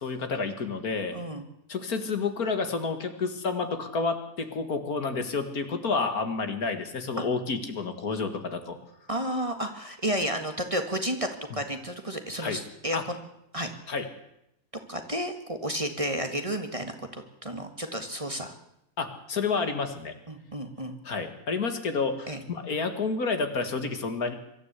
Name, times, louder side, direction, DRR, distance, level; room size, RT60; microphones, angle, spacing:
voice 1, 0.0-1.2 1.7-8.8 12.4-12.6 12.9-13.0 13.9-14.1 19.0-20.1 21.0-24.3, left 4 dB, 65° left, 7 dB, 2.3 m, -30 dB
voice 2, 1.1-1.4 7.2-7.3 9.1-13.2 13.5-13.7 14.9-18.5 20.3-21.0 22.3-22.4, right 1 dB, 20° right, 6 dB, 1.7 m, -32 dB
23.5 x 13.5 x 8.3 m, 0.80 s
omnidirectional pair, 1.7 m